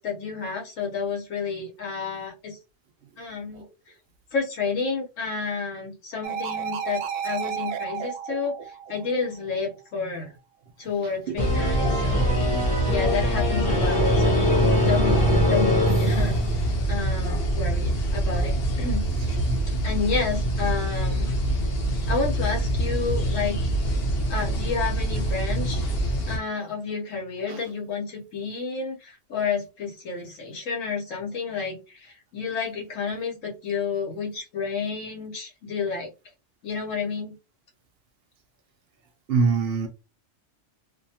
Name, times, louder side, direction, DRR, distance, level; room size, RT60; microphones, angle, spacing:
voice 1, 0.0-2.6 3.2-3.6 4.3-10.3 10.8-12.3 12.9-14.6 14.8-19.1 19.8-21.3 22.1-23.7 24.3-25.8 26.3-36.1 36.6-37.4, left 5 dB, 90° left, 1.3 m, -30 dB
sound 1, 6.2-9.6, right 7 dB, 85° right, 0.9 m, -32 dB
sound 2, 11.4-26.4, right 1 dB, 60° left, 0.9 m, -25 dB
sound 3, 11.4-17.0, left 1 dB, 5° left, 0.9 m, -23 dB
voice 2, 39.3-39.9, right 5 dB, 65° right, 0.7 m, -24 dB
2.7 x 2.2 x 2.7 m
omnidirectional pair, 1.3 m